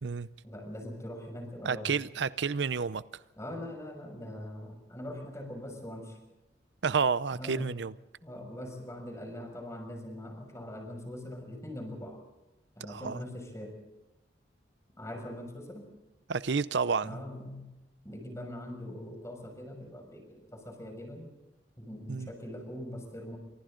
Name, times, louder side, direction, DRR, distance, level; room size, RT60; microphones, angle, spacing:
voice 1, 0.4-2.0 3.4-6.2 7.3-7.7 8.2-12.2 12.8-13.8 15.0-15.9 17.0-17.7 18.0-21.3 21.8-23.4, left 1 dB, 15° left, 6.3 m, -42 dB
voice 2, 1.6-3.0 6.8-7.9 12.9-13.2 16.3-17.2 22.1-22.3, right 5 dB, 75° right, 0.6 m, -30 dB
29.5 x 25.5 x 3.9 m
head